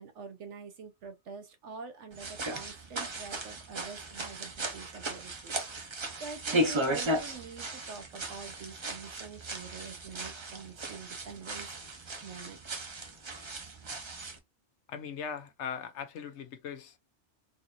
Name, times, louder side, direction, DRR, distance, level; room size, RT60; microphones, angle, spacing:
voice 1, 0.0-5.9 6.2-12.8, right 5 dB, 80° right, 1.1 m, -46 dB
sound 1, 2.1-14.4, right 1 dB, 35° right, 0.5 m, -36 dB
voice 2, 14.9-17.0, left 7 dB, 80° left, 0.9 m, -39 dB
3.8 x 2.5 x 2.8 m
omnidirectional pair, 1.2 m